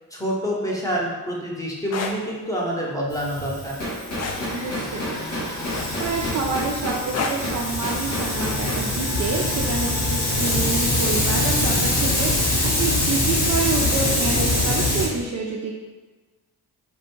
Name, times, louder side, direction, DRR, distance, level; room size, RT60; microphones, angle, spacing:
voice 1, 0.1-3.8, equal, 5° left, -4 dB, 0.7 m, -27 dB
sound 1, 1.8-2.2 4.2-4.4 5.7-6.2 7.1-7.5 8.9-9.1, left 5 dB, 40° left, 0.4 m, -28 dB
Hiss, 3.1-15.1, left 1 dB, 65° left, 1.2 m, -24 dB
sound 2, 3.6-14.4, left 1 dB, 90° left, 1.0 m, -32 dB
voice 2, 4.5-15.7, right 4 dB, 35° right, -3 dB, 0.4 m, -28 dB
2.4 x 2.2 x 3.0 m, 1.3 s
hypercardioid pair, 40°, 47 cm